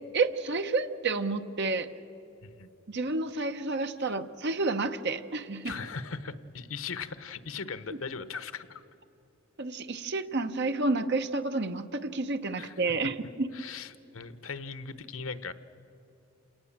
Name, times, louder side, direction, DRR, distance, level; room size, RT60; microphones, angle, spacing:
voice 1, 0.1-1.9 2.9-5.7 9.6-13.5, right 3 dB, 55° right, 8 dB, 0.9 m, -30 dB
voice 2, 5.6-8.8 12.6-13.1 13.5-15.5, left 5 dB, 85° left, 13 dB, 1.0 m, -39 dB
28.0 x 18.5 x 7.3 m, 2.8 s
head